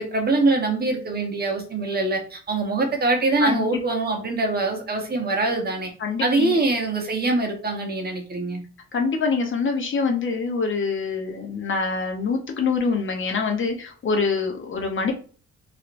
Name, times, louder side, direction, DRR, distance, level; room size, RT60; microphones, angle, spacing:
voice 1, 0.0-5.9 6.2-8.6, right 2 dB, 30° right, 2 dB, 1.0 m, -23 dB
voice 2, 3.4-3.8 6.0-6.6 8.9-15.1, left 4 dB, 40° left, 4 dB, 0.7 m, -25 dB
3.0 x 3.0 x 2.5 m, 0.40 s
cardioid pair, 90°, 30 cm